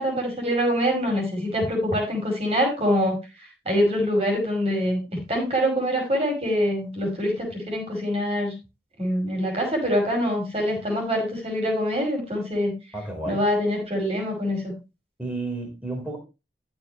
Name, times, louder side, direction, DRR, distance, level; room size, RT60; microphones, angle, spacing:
voice 1, 0.0-3.1 3.7-8.5 9.0-12.7 13.3-14.7, equal, 35° right, 5.5 m, -24 dB
voice 2, 12.9-13.4 15.2-16.2, right 2 dB, 5° right, 3.7 m, -31 dB
14.0 x 7.3 x 3.0 m
head